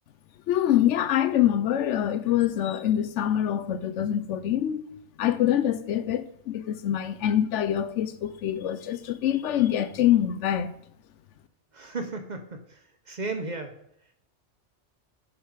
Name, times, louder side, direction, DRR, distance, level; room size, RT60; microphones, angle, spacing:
voice 1, 0.5-4.8 5.2-10.7, left 11 dB, 80° left, 0.9 m, -25 dB
voice 2, 11.7-12.8 13.1-13.8, right 3 dB, 45° right, 0.8 m, -34 dB
7.0 x 5.0 x 4.8 m
omnidirectional pair, 1.2 m